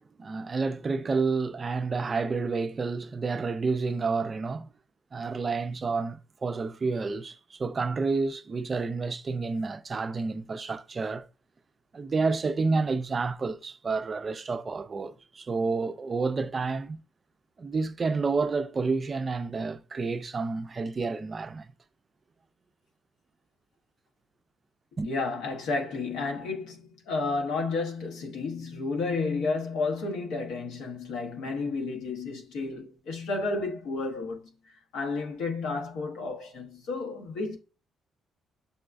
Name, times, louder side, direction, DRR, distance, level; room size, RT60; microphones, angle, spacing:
voice 1, 0.0-4.7 5.1-11.3 11.9-17.0 17.6-21.7 25.0-25.1, right 4 dB, 35° right, 0.4 m, -29 dB
voice 2, 25.0-34.4 34.9-37.6, left 3 dB, 90° left, 0.9 m, -31 dB
6.7 x 2.2 x 2.4 m
cardioid pair, 90°, 0 cm